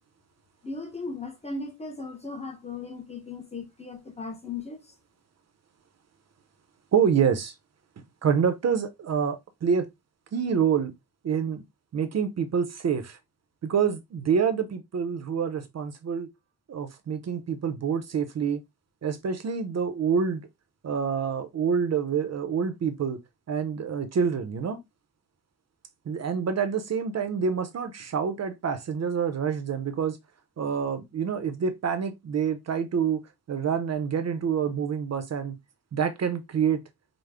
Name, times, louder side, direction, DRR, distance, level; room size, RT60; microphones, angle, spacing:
voice 1, 0.6-4.9, left 3 dB, 15° left, 0.6 m, -37 dB
voice 2, 6.9-7.5 8.2-9.9 10.3-10.9 11.2-11.6 11.9-13.2 13.6-16.3 16.7-18.6 19.0-20.5 20.8-23.2 23.5-24.8 26.1-30.2 30.6-33.2 33.5-35.6 35.9-36.8, right 7 dB, 45° right, 0.5 m, -27 dB
4.9 x 2.0 x 3.3 m
wide cardioid pair, 165°, 38 cm